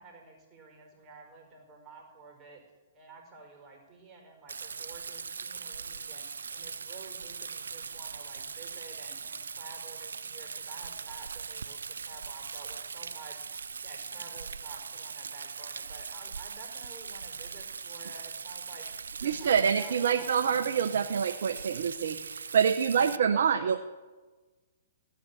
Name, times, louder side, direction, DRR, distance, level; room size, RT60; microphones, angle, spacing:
voice 1, 0.0-2.6 2.9-18.9 19.1-20.9 22.9-23.8, right 4 dB, 25° right, 1 dB, 4.6 m, -51 dB
Rain, 4.5-23.2, right 5 dB, 85° right, 0.5 m, -40 dB
voice 2, 19.2-23.8, right 7 dB, 70° right, 5 dB, 1.0 m, -26 dB
17.0 x 9.6 x 7.1 m, 1.3 s
hypercardioid pair, 135°, 0 cm